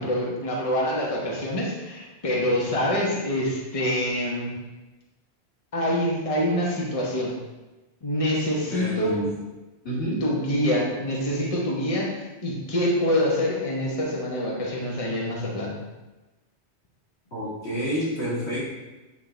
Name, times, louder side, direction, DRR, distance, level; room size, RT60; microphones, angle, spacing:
voice 1, 0.0-4.5 5.7-7.4 8.0-9.1 10.2-15.7, left 1 dB, 35° left, -3 dB, 1.2 m, -26 dB
voice 2, 8.7-9.3 9.8-10.3 17.3-18.7, equal, 85° left, -7 dB, 2.3 m, -28 dB
8.5 x 3.8 x 3.8 m, 1.1 s
omnidirectional pair, 1.1 m